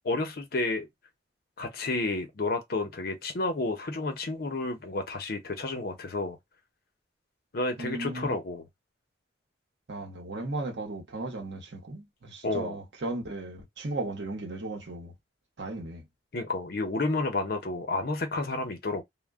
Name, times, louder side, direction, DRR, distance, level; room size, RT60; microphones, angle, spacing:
voice 1, 0.0-0.9 1.6-6.4 7.5-8.7 12.4-12.8 16.3-19.0, left 2 dB, 55° left, 0.6 m, -31 dB
voice 2, 7.8-8.3 9.9-15.1 15.6-16.0, right 2 dB, 70° right, 0.8 m, -36 dB
2.1 x 2.1 x 3.4 m
head